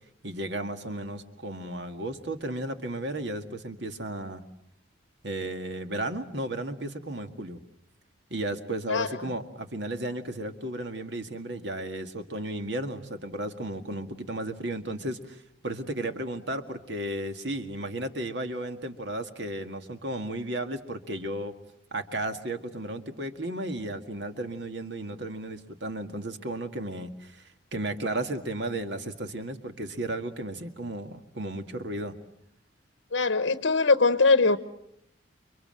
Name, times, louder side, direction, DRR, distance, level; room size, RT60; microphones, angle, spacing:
voice 1, 0.2-4.4 5.2-7.6 8.3-21.5 21.9-32.2, right 1 dB, 60° right, 2.0 m, -34 dB
voice 2, 33.1-34.6, left 3 dB, 75° left, 1.0 m, -21 dB
29.5 x 24.0 x 7.8 m
head